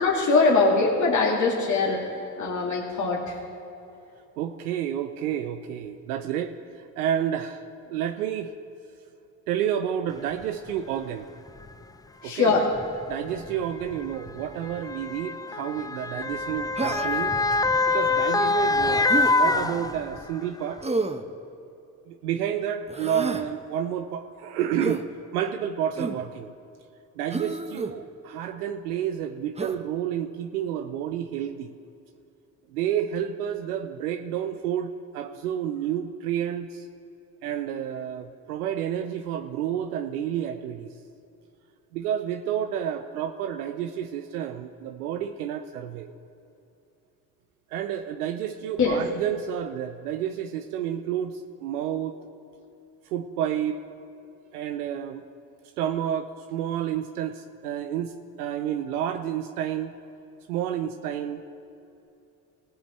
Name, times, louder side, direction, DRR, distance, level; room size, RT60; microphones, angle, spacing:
voice 1, 0.0-2.0 2.4-3.4 12.2-12.7 48.8-49.0, left 3 dB, 40° left, -4 dB, 2.3 m, -22 dB
voice 2, 4.4-8.5 9.5-11.3 12.2-12.6 13.1-20.8 22.1-25.1 25.3-26.5 27.2-31.7 32.7-36.9 37.4-41.0 41.9-46.1 47.7-52.2 53.0-53.8 54.5-55.2 55.8-59.9 60.5-61.4, right 10 dB, 85° right, 7 dB, 0.6 m, -30 dB
Motor vehicle (road) / Siren, 10.4-10.5 11.5-11.7 12.8-20.4 20.8-20.9, left 3 dB, 10° left, 0.4 m, -25 dB
Human voice, 16.8-17.3 19.1-19.3 20.8-21.2 22.9-23.5 24.8-25.0 25.9-26.2 27.3-27.9 29.6-29.8, right 3 dB, 15° right, 1.0 m, -29 dB
19.0 x 9.2 x 3.1 m, 2.8 s
hypercardioid pair, 50°, 44 cm